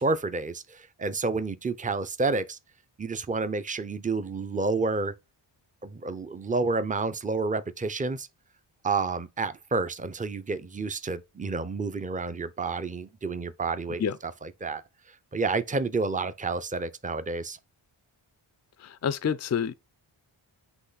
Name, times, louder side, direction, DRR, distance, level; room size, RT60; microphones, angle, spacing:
voice 1, 0.0-2.6 3.0-5.1 5.8-8.3 8.8-14.0 14.4-14.8 15.3-17.6, right 3 dB, 15° right, 0.6 m, -29 dB
voice 2, 18.8-19.7, left 7 dB, 35° left, 0.4 m, -28 dB
7.9 x 3.1 x 4.0 m
cardioid pair, 70°, 49 cm